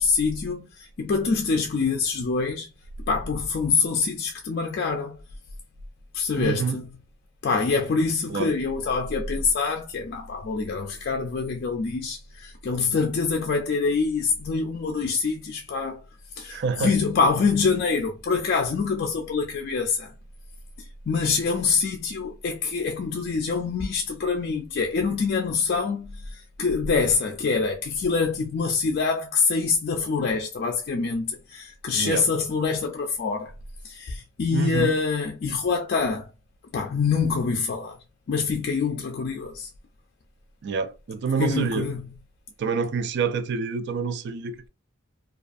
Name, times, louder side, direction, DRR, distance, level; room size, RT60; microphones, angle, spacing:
voice 1, 0.0-2.7 3.1-5.2 6.1-6.9 7.4-16.0 16.3-20.1 20.8-33.5 33.8-36.3 36.7-38.0 38.3-39.7 41.4-42.1, left 4 dB, 50° left, 0.4 m, -25 dB
voice 2, 6.4-6.8 8.3-8.5 16.5-16.9 32.0-32.3 34.5-34.9 40.6-41.9 42.6-44.7, right 5 dB, 55° right, 0.3 m, -27 dB
2.4 x 2.3 x 2.4 m
head